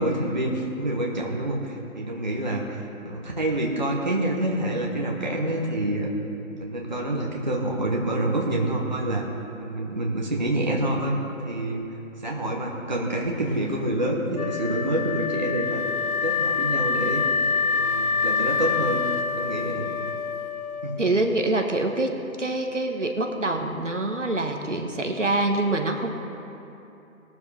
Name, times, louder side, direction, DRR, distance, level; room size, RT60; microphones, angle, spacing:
voice 1, 0.0-6.1 6.6-9.2 9.6-11.2 11.4-11.8 12.2-15.8 16.2-17.2 17.7-19.0 19.3-19.9 20.8-21.0, right 1 dB, 30° right, -1 dB, 1.2 m, -27 dB
Wind instrument woodwind instrument, 14.3-21.4, left 5 dB, 80° left, 0.6 m, -26 dB
voice 2, 21.0-26.1, right 2 dB, 60° right, 3 dB, 1.4 m, -25 dB
20.5 x 7.5 x 3.4 m, 2.9 s
figure-of-eight pair, 165°, 42 cm